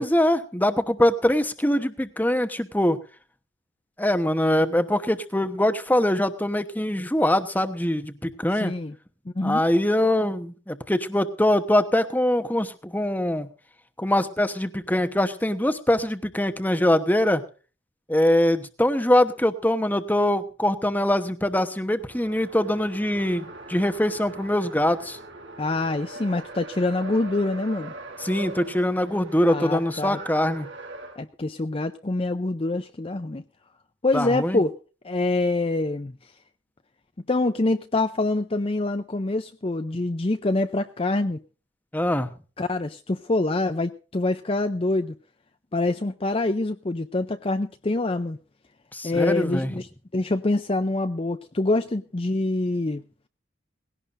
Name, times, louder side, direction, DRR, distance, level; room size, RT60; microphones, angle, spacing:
voice 1, 0.0-3.0 4.0-8.7 9.4-13.5 14.0-17.4 18.1-25.2 28.2-30.7 34.1-34.6 41.9-42.3 48.9-49.7, left 1 dB, 10° left, 9 dB, 1.1 m, -23 dB
voice 2, 8.5-8.9 9.3-9.6 25.6-27.9 29.5-30.2 31.2-33.4 34.0-34.7 35.0-36.1 37.3-41.4 42.6-45.1 45.7-48.4 49.0-49.9 50.1-53.0, left 2 dB, 30° left, 8 dB, 0.6 m, -25 dB
Race car auto racing, 21.9-31.2, right 2 dB, 75° right, 4.2 m, -41 dB
19.5 x 17.0 x 2.6 m, 0.36 s
head